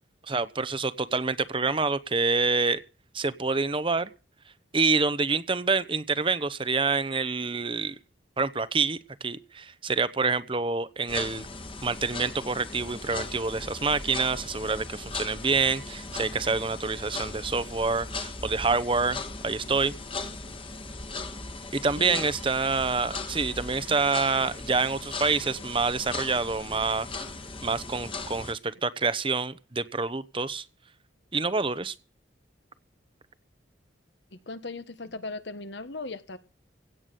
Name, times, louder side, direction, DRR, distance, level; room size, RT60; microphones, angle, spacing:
voice 1, 0.3-2.8 3.1-4.1 4.7-8.0 8.4-11.5 11.8-19.2 19.4-19.9 21.7-27.1 27.6-30.7 31.3-31.9, right 4 dB, 25° right, 0.9 m, -27 dB
sound 1, 11.1-28.5, left 3 dB, 25° left, 1.5 m, -38 dB
voice 2, 34.3-36.4, left 2 dB, 65° left, 1.4 m, -38 dB
16.5 x 8.2 x 6.9 m
head